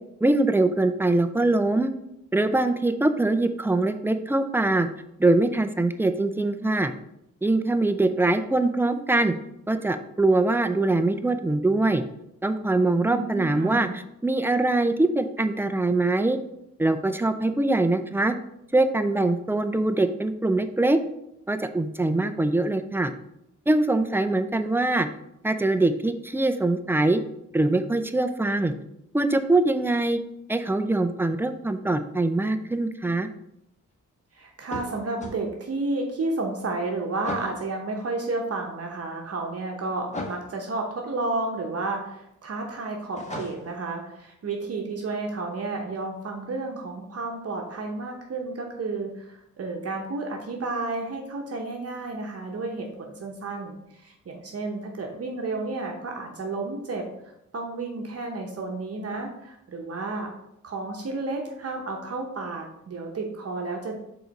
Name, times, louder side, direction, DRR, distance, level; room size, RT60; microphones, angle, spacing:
voice 1, 0.2-1.9 2.3-4.9 5.2-6.9 7.4-9.3 9.7-12.0 12.4-16.4 16.8-18.3 18.7-21.0 21.5-23.1 23.7-25.1 25.4-27.2 27.5-28.7 29.1-30.2 30.5-33.3, right 2 dB, 5° right, 9 dB, 0.4 m, -23 dB
voice 2, 12.8-14.0 34.3-57.0 57.5-60.3 60.6-64.0, right 3 dB, 50° right, 1 dB, 0.9 m, -31 dB
sound 1, 34.7-35.4 37.2-37.6 40.1-40.5 43.2-43.8, left 1 dB, 20° left, 1.2 m, -35 dB
4.9 x 3.9 x 5.2 m, 0.83 s
wide cardioid pair, 110°, 31 cm